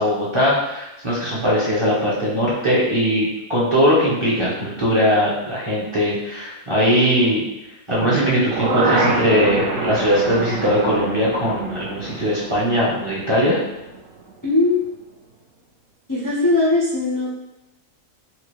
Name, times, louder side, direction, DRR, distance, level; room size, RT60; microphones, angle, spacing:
voice 1, 0.0-7.4 7.9-13.6, equal, 30° right, -8 dB, 0.7 m, -20 dB
sound 1, 7.9-14.0 14.3-14.4, right 3 dB, 75° right, 1.0 m, -26 dB
voice 2, 14.4-14.8 16.1-17.3, left 2 dB, 30° left, -7 dB, 0.3 m, -19 dB
4.2 x 2.3 x 3.0 m, 0.92 s
omnidirectional pair, 1.4 m